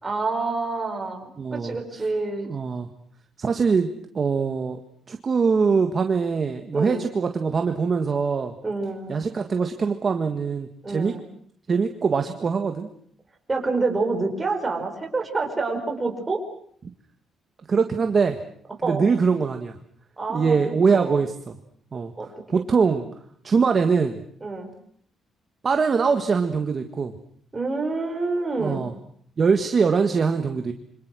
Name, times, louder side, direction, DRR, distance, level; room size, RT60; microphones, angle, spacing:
voice 1, 0.0-2.5 6.7-7.1 8.6-9.2 10.8-11.2 13.5-16.4 18.8-19.0 20.2-21.2 22.1-22.6 24.4-24.7 27.5-28.9, right 3 dB, 20° right, 3 dB, 4.8 m, -27 dB
voice 2, 1.4-1.7 2.4-2.9 3.4-4.8 5.1-8.5 9.1-11.1 11.7-12.9 17.7-18.4 18.8-19.7 20.3-21.6 21.9-22.1 22.5-23.0 23.4-24.2 25.6-27.1 28.6-28.9 29.4-30.7, right 5 dB, 35° right, 6 dB, 1.7 m, -22 dB
27.5 x 25.5 x 6.3 m, 0.63 s
cardioid pair, 145°, 0 cm